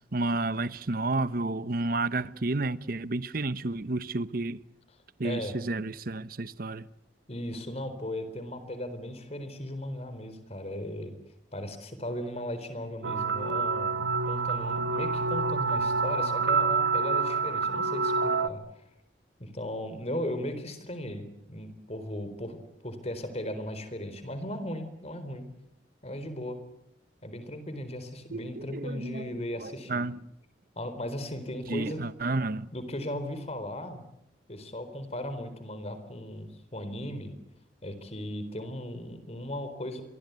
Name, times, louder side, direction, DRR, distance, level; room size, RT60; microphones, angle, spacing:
voice 1, 0.1-4.6 5.2-6.9 28.3-29.3 29.6-30.2 31.7-32.7, right 2 dB, 55° right, 1.0 m, -31 dB
voice 2, 5.2-5.6 7.3-11.2 11.5-18.8 19.4-25.5 26.0-26.6 27.2-30.0 30.7-32.0 32.7-34.0 34.5-37.3 37.8-40.0, left 1 dB, 35° left, 4.1 m, -37 dB
sound 1, 13.0-18.5, right 4 dB, 85° right, 1.5 m, -27 dB
27.5 x 23.0 x 8.3 m
head